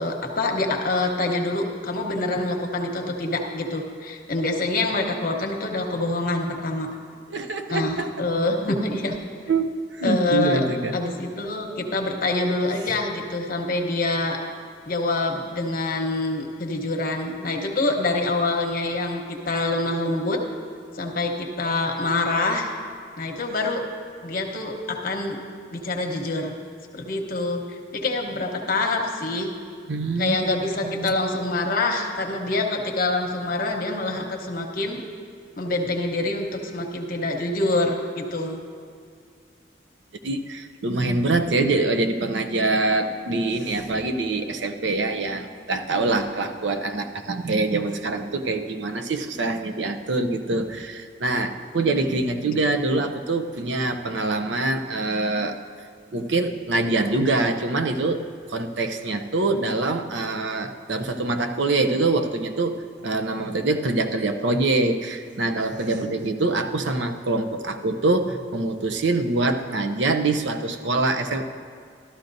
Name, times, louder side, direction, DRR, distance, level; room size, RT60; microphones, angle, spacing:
voice 1, 0.0-6.9 7.7-9.2 10.0-10.6 10.9-14.4 14.8-20.4 20.9-22.7 23.2-23.8 24.2-25.4 25.7-26.6 26.9-29.5 30.2-35.0 35.6-38.6 65.8-66.4, left 2 dB, 50° left, 2 dB, 1.0 m, -26 dB
voice 2, 7.3-8.1 9.5-11.0 11.7-11.8 29.9-30.4 30.8-31.1 40.2-55.6 56.1-58.2 58.5-71.5, right 2 dB, 75° right, 7 dB, 0.7 m, -24 dB
13.0 x 12.5 x 2.6 m, 2.2 s
head